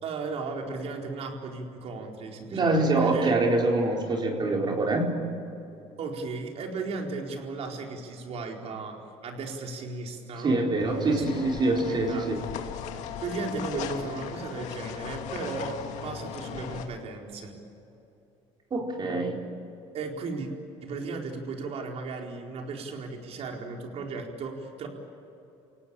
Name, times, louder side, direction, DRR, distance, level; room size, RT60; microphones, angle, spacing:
voice 1, 0.0-3.4 6.0-11.5 11.9-12.3 13.2-17.6 19.9-20.5 20.8-24.9, right 4 dB, 60° right, 2 dB, 4.4 m, -36 dB
voice 2, 2.5-5.2 10.4-12.4 18.7-19.4, right 2 dB, 40° right, 1 dB, 4.3 m, -25 dB
sound 1, 10.8-16.9, left 8 dB, 75° left, 2.3 m, -37 dB
29.5 x 18.0 x 8.9 m, 2.9 s
cardioid pair, 105°, 12 cm